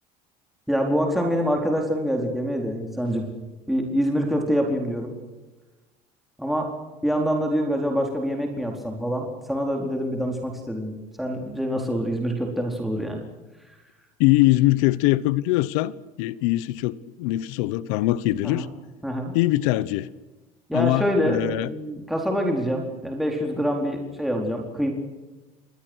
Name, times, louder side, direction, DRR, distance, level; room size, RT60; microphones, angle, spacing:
voice 1, 0.7-3.3 3.7-5.1 6.4-6.7 7.0-13.2 18.4-18.7 19.0-19.3 20.7-24.9, equal, ahead, 4.2 m, -25 dB
voice 2, 14.2-18.7 19.3-20.1 20.7-21.7, left 17 dB, 85° left, 1.1 m, -22 dB
29.0 x 21.0 x 6.4 m
cardioid pair, 125°, 16 cm